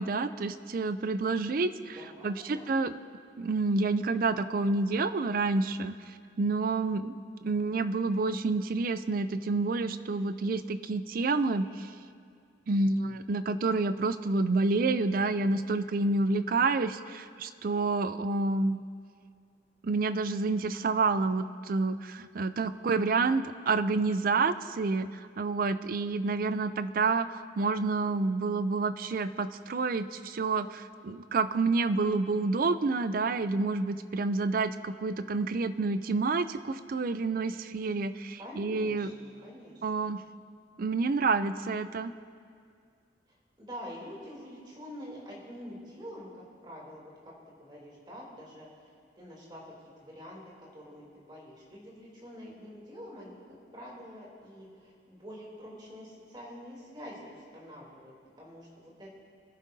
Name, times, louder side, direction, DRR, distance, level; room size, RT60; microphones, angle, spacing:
voice 1, 0.0-2.0 2.2-2.9 3.4-6.0 6.4-7.1 7.4-11.9 12.7-18.8 19.8-25.1 25.4-39.1 39.8-40.2 40.8-42.1, right 3 dB, 50° right, 12 dB, 0.4 m, -28 dB
voice 2, 1.8-2.7 38.4-40.2 43.3-50.4 50.7-59.2, equal, 25° right, -4 dB, 2.9 m, -46 dB
23.5 x 11.0 x 2.7 m, 2.2 s
head